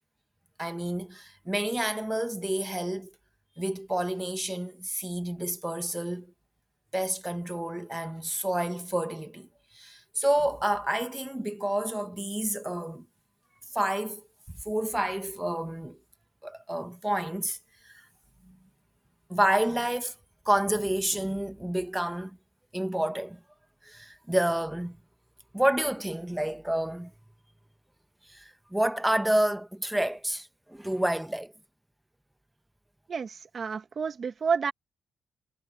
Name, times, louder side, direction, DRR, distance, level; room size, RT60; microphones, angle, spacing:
voice 1, 0.6-3.1 3.6-6.3 6.9-9.5 9.7-13.1 13.7-14.2 14.6-16.0 16.4-17.6 17.8-18.0 18.5-18.6 19.3-20.1 20.4-22.4 22.7-23.4 23.8-25.0 25.5-27.1 28.3-31.5, right 1 dB, 5° right, 1.5 m, -29 dB
voice 2, 33.1-34.7, right 5 dB, 45° right, 1.6 m, -30 dB
cardioid pair, 90°, 0 cm